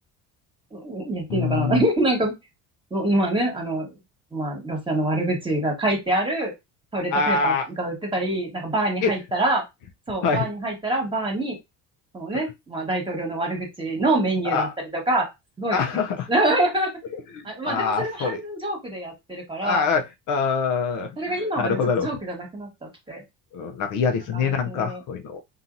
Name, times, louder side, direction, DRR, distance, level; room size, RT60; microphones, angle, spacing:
voice 1, 0.7-2.3 2.9-3.9 4.3-6.5 6.9-9.6 10.1-11.6 12.1-14.7 14.9-15.3 15.6-15.8 16.3-16.9 17.4-19.8 21.2-23.2 24.3-25.0, right 1 dB, 15° right, 1.3 m, -25 dB
voice 2, 1.3-1.8 7.1-7.7 9.0-9.1 10.2-10.5 12.3-12.4 14.4-14.7 15.7-16.3 17.1-18.4 19.6-22.1 23.5-25.4, left 5 dB, 55° left, 0.6 m, -25 dB
2.7 x 2.4 x 2.6 m
supercardioid pair, 85°, 37 cm